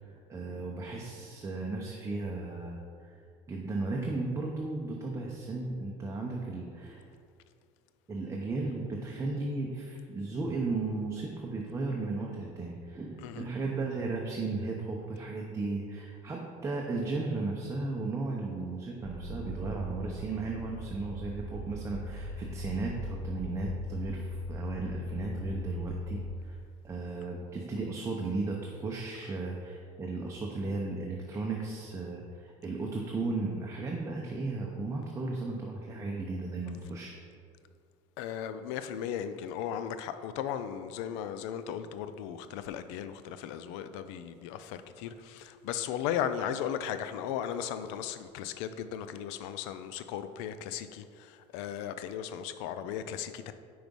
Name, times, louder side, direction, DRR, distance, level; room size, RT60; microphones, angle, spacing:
voice 1, 0.0-3.1 3.5-7.0 8.1-26.6 26.8-37.1, right 3 dB, 20° right, -1 dB, 0.7 m, -35 dB
sound 1, 19.0-26.3, left 1 dB, 40° right, 1.0 m, -39 dB
voice 2, 38.2-53.5, left 9 dB, 85° left, 11 dB, 0.4 m, -36 dB
5.0 x 4.7 x 5.3 m, 2.2 s
supercardioid pair, 110°, 15 cm